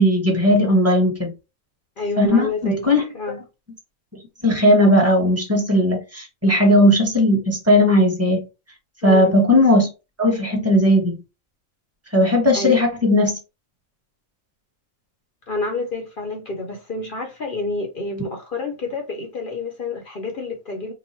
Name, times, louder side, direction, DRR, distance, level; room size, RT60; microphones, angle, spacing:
voice 1, 0.0-1.3 2.2-3.0 4.4-8.4 9.0-9.9 10.2-11.2 12.1-13.4, left 1 dB, 10° right, 1.0 m, -17 dB
voice 2, 2.0-2.9 3.1-3.4 9.0-9.4 12.5-12.8 15.5-20.9, left 2 dB, 50° left, 0.6 m, -28 dB
2.9 x 2.4 x 4.2 m
omnidirectional pair, 1.5 m